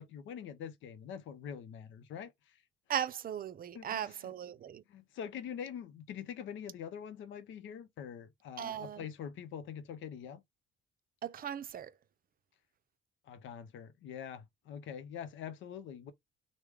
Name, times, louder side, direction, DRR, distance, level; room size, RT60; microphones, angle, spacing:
voice 1, 0.0-2.6 3.7-4.0 4.9-10.4 13.3-16.1, left 8 dB, 75° left, 0.6 m, -44 dB
voice 2, 2.9-4.8 8.6-9.1 11.2-11.9, right 9 dB, 45° right, 0.5 m, -38 dB
3.2 x 2.1 x 3.5 m
cardioid pair, 90°, 20 cm